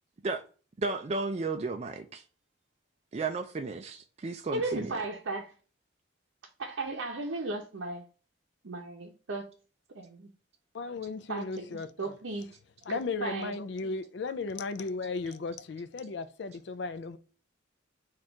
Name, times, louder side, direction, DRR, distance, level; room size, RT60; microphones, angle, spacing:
voice 1, 0.8-2.2 3.1-5.0, right 3 dB, 30° right, 0.3 m, -33 dB
voice 2, 4.5-5.5 6.6-8.0 8.6-9.5 9.9-10.3 11.3-12.5 12.9-13.5, right 2 dB, 80° right, 0.7 m, -35 dB
voice 3, 10.7-12.1 12.9-17.2, left 4 dB, 60° left, 0.4 m, -35 dB
4.3 x 2.5 x 4.5 m
head